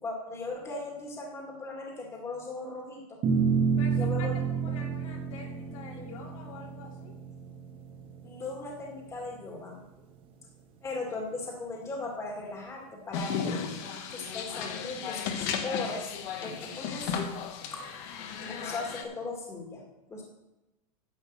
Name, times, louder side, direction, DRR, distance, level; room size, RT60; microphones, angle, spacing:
voice 1, 0.0-3.2 4.0-4.4 8.2-9.8 10.8-13.6 14.1-16.1 16.4-17.3 17.7-17.9 18.4-19.8 20.1-20.2, left 3 dB, 15° left, -1 dB, 1.9 m, -38 dB
sound 1, 3.2-9.8, right 6 dB, 30° right, 1.4 m, -30 dB
voice 2, 3.8-7.1, left 5 dB, 75° left, -1 dB, 2.8 m, -46 dB
sound 2, 13.1-19.0, left 7 dB, 45° left, 1.2 m, -35 dB
10.5 x 5.4 x 7.3 m, 0.98 s
supercardioid pair, 150°, 17 cm